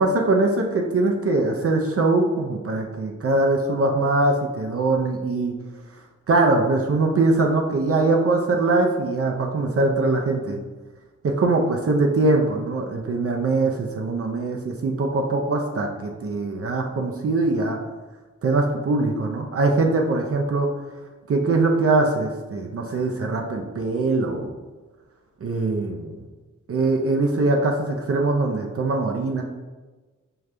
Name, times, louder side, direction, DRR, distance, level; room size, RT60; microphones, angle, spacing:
voice 1, 0.0-5.5 6.3-10.6 11.2-17.8 18.4-20.7 21.3-24.5 25.4-26.2 26.7-29.4, right 2 dB, 50° right, 2 dB, 0.5 m, -22 dB
5.0 x 2.4 x 3.2 m, 1.3 s
wide cardioid pair, 80°, 31 cm